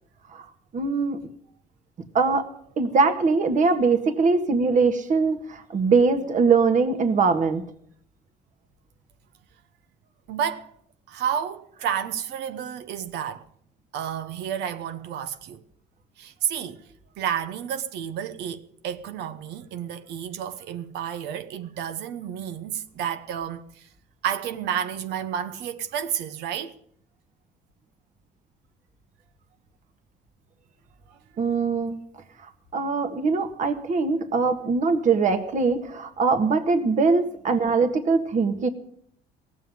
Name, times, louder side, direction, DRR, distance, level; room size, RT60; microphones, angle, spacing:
voice 1, 0.7-1.2 2.1-2.5 2.8-7.7 31.4-32.0 32.7-38.7, right 4 dB, 50° right, 1.8 m, -22 dB
voice 2, 10.3-10.7 11.1-13.5 13.9-15.6 16.2-16.9 17.2-23.9 24.2-26.8 31.1-31.4 37.5-37.6, right 9 dB, 85° right, 1.1 m, -31 dB
17.5 x 7.5 x 9.2 m
cardioid pair, 110°, 17 cm